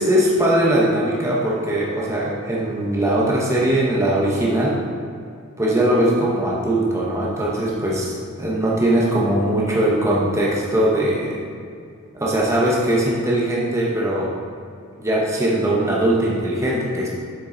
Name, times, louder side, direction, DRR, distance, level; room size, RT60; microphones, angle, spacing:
voice 1, 0.0-4.8 5.6-11.4 12.1-14.3 15.0-17.1, right 1 dB, 15° right, -5 dB, 0.9 m, -20 dB
7.5 x 6.4 x 3.9 m, 2.4 s
head